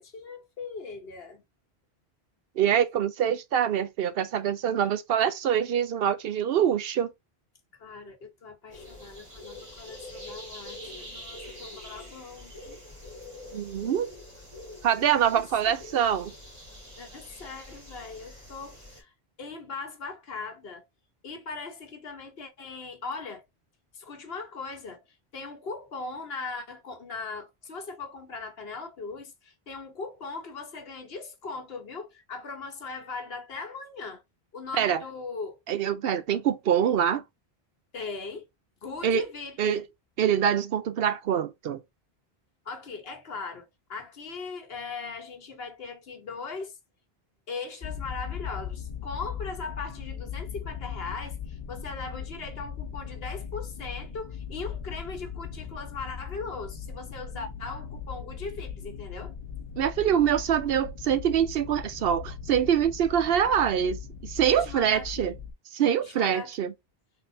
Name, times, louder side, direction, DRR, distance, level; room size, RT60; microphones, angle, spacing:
voice 1, 0.0-1.4 7.8-12.8 15.3-15.7 17.0-19.1 19.4-20.8 21.2-23.5 23.9-25.0 25.3-34.2 34.5-35.6 37.9-38.5 38.8-39.8 42.6-46.8 47.5-59.3 64.5-65.4 66.0-66.6, left 4 dB, 70° left, 1.3 m, -39 dB
voice 2, 2.6-7.1 13.5-14.1 14.8-16.3 34.7-35.0 35.7-37.2 39.0-39.2 39.6-39.8 40.2-41.8 59.8-65.3 65.7-66.7, right 9 dB, 70° right, 0.8 m, -25 dB
sound 1, 8.7-19.0, left 1 dB, 30° right, 2.3 m, -45 dB
sound 2, 47.8-65.5, left 7 dB, 30° left, 0.8 m, -39 dB
3.8 x 3.7 x 2.7 m
omnidirectional pair, 1.0 m